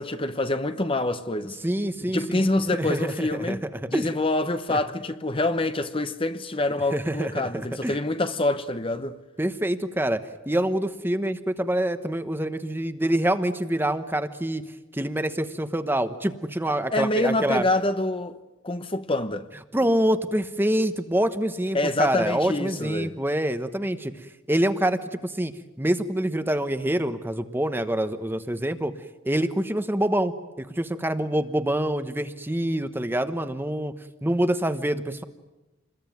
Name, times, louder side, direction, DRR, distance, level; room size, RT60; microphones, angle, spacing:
voice 1, 0.0-1.6 2.1-3.6 3.9-9.2 16.9-18.4 18.6-19.5 21.7-23.2, left 2 dB, 25° left, 0.9 m, -26 dB
voice 2, 1.6-2.4 2.7-3.6 3.9-4.1 4.7-4.8 6.9-8.0 9.4-10.2 10.5-14.6 14.9-17.6 19.7-24.1 24.5-25.5 25.8-28.9 29.2-33.9 34.2-35.2, right 1 dB, 10° right, 1.1 m, -26 dB
28.0 x 21.5 x 9.3 m
head